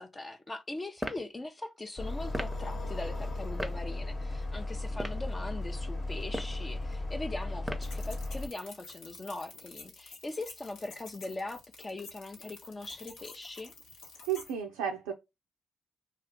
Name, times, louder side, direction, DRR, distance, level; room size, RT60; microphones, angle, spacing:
voice 1, 0.0-13.7, left 2 dB, 30° left, 0.5 m, -41 dB
sound 1, 1.0-1.3 2.3-2.6 3.6-3.8 4.9-5.3 6.2-6.6 7.6-8.0, right 1 dB, 10° right, 0.6 m, -36 dB
sound 2, 2.0-8.5, left 2 dB, 45° left, 1.0 m, -36 dB
sound 3, 7.8-14.5, left 4 dB, 75° left, 1.0 m, -50 dB
voice 2, 14.3-15.1, right 9 dB, 85° right, 0.3 m, -32 dB
2.8 x 2.3 x 3.5 m
hypercardioid pair, 45°, 0 cm